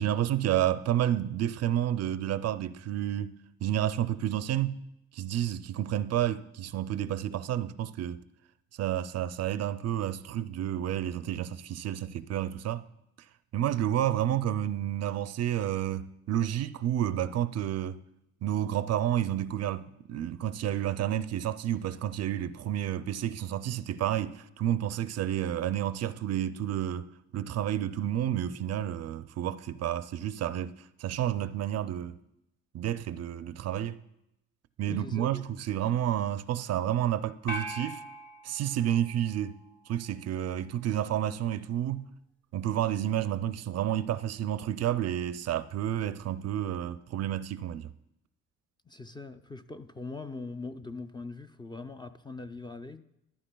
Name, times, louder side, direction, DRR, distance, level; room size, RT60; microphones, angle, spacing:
voice 1, 0.0-4.8 5.1-8.2 8.7-12.8 13.5-18.0 18.4-32.2 32.7-34.0 34.8-38.0 38.4-39.6 39.9-42.1 42.5-47.9, right 11 dB, 55° right, 0.4 m, -30 dB
voice 2, 34.9-35.4 48.9-53.0, left 3 dB, 15° left, 0.4 m, -41 dB
sound 1, 37.5-40.0, right 1 dB, 40° left, 1.9 m, -41 dB
14.0 x 11.5 x 2.2 m
cardioid pair, 90°, 30 cm